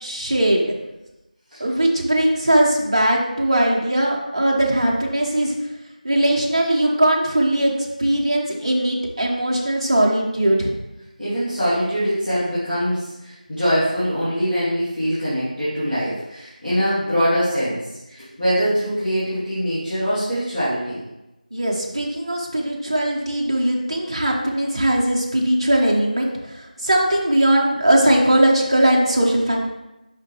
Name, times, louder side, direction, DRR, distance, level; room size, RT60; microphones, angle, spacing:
voice 1, 0.0-0.7 1.6-5.6 6.0-10.7 21.5-29.6, right 1 dB, 35° right, -2 dB, 1.1 m, -19 dB
voice 2, 11.2-21.0, equal, 5° left, -20 dB, 1.2 m, -23 dB
6.6 x 5.2 x 3.1 m, 0.97 s
figure-of-eight pair, 170°, 5 cm